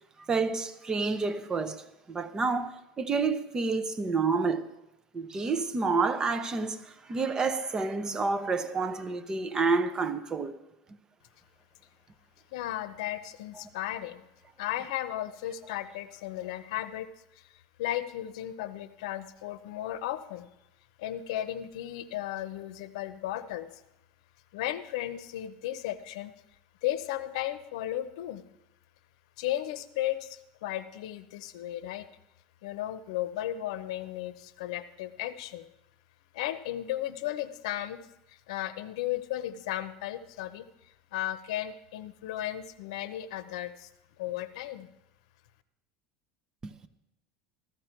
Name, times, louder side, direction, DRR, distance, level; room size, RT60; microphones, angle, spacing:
voice 1, 0.3-4.6 5.1-10.6 46.6-46.7, right 4 dB, 20° right, 0.8 m, -29 dB
voice 2, 12.5-14.2 14.6-17.1 17.4-20.5 21.0-23.7 24.5-26.3 26.8-28.4 29.4-32.1 32.6-35.7 36.3-38.0 38.3-40.7 41.1-43.9 44.2-44.9, left 13 dB, 80° left, 0.8 m, -35 dB
14.5 x 13.5 x 4.5 m
supercardioid pair, 135°, 3 cm